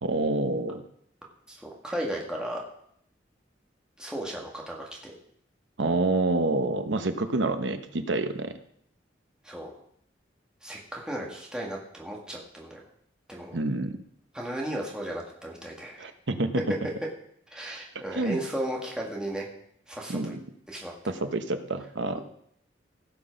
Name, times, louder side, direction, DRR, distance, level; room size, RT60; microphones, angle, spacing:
voice 1, 0.0-0.8 5.8-8.5 13.5-14.0 16.0-16.6 18.1-18.4 20.1-20.4 21.1-22.2, right 2 dB, 80° right, 9 dB, 1.0 m, -28 dB
voice 2, 1.5-2.6 4.0-5.1 9.4-9.7 10.6-12.8 13.3-13.6 14.3-16.1 17.5-19.5 19.9-20.4 20.7-20.9, right 1 dB, 5° right, -2 dB, 1.8 m, -35 dB
16.5 x 6.1 x 5.2 m, 0.68 s
head